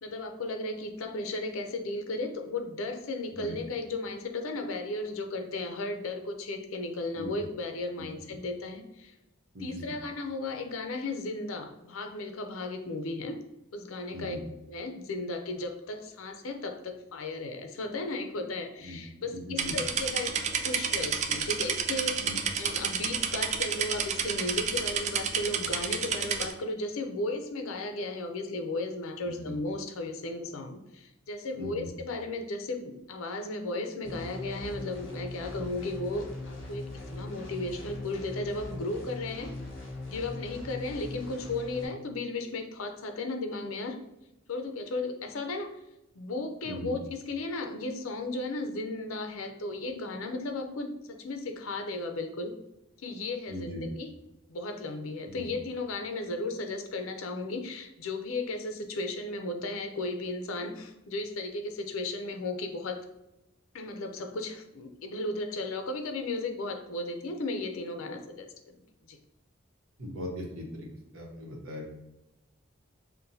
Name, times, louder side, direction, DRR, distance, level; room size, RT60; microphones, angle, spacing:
voice 1, 0.0-9.1 9.6-13.4 13.7-14.4 14.7-20.3 20.6-22.3 22.6-39.5 40.1-44.0 44.5-45.7 46.2-52.5 53.0-54.1 54.5-63.0 63.7-68.5 69.1-69.2, left 2 dB, 90° left, 6 dB, 0.5 m, -35 dB
voice 2, 9.5-9.9 14.1-14.4 18.8-19.0 19.3-19.7 22.2-22.4 29.2-29.5 31.6-31.9 46.6-46.9 53.5-53.9 55.3-55.5 70.0-70.9 71.1-72.0, equal, 85° right, -1 dB, 1.0 m, -39 dB
sound 1, 19.6-26.5, right 6 dB, 35° right, 0.3 m, -30 dB
sound 2, 34.0-41.8, left 2 dB, 60° left, 1.3 m, -40 dB
5.7 x 2.2 x 2.6 m, 0.91 s
head